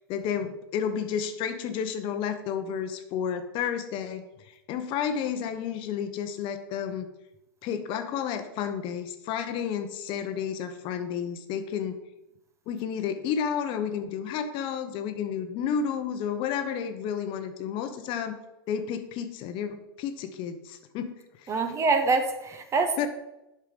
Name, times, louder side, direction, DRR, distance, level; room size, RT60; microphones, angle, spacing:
voice 1, 0.1-4.3 4.7-7.1 7.6-12.0 12.7-18.4 18.7-21.5 23.0-23.1, left 8 dB, 40° left, 9 dB, 0.9 m, -31 dB
voice 2, 21.5-23.1, right 4 dB, 20° right, 7 dB, 1.0 m, -25 dB
8.0 x 5.6 x 5.2 m, 0.93 s
hypercardioid pair, 115°, 13 cm